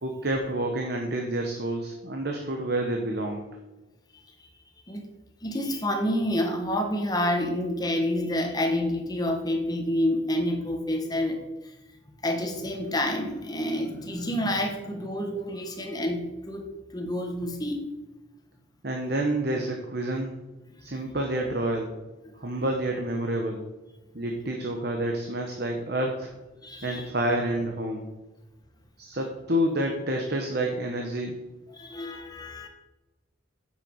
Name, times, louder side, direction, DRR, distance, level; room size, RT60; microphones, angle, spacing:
voice 1, 0.0-3.5 18.8-20.3 20.8-21.9 22.4-23.6 24.1-26.3 26.8-28.0 29.0-31.4, right 1 dB, 50° right, 2 dB, 1.2 m, -28 dB
voice 2, 5.4-11.8 12.2-17.9 22.2-22.3 26.6-27.1 31.7-32.7, left 1 dB, 20° left, 3 dB, 1.4 m, -28 dB
9.7 x 7.7 x 4.7 m, 1.1 s
head